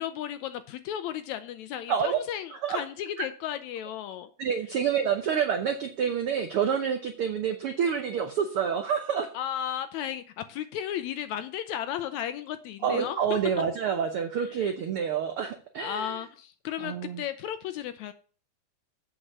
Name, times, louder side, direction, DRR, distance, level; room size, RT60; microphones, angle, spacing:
voice 1, 0.0-4.3 4.8-4.9 9.3-13.2 14.4-14.7 15.8-18.1, left 10 dB, 80° left, 11 dB, 1.7 m, -34 dB
voice 2, 1.9-2.2 2.6-2.8 4.4-9.3 12.8-16.2 16.8-17.2, right 7 dB, 80° right, 7 dB, 1.2 m, -28 dB
8.1 x 6.1 x 6.6 m, 0.41 s
omnidirectional pair, 3.7 m